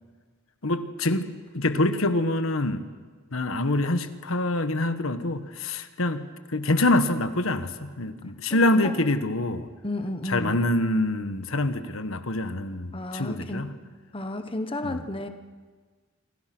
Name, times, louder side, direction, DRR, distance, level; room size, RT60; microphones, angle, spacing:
voice 1, 0.6-1.3 1.5-2.8 3.3-9.7 10.3-13.7 14.8-15.0, left 2 dB, 75° left, 9 dB, 1.5 m, -25 dB
voice 2, 8.5-8.9 9.8-10.6 12.9-13.7 14.1-15.3, left 1 dB, 25° left, 7 dB, 1.2 m, -32 dB
27.0 x 25.0 x 6.2 m, 1.4 s
head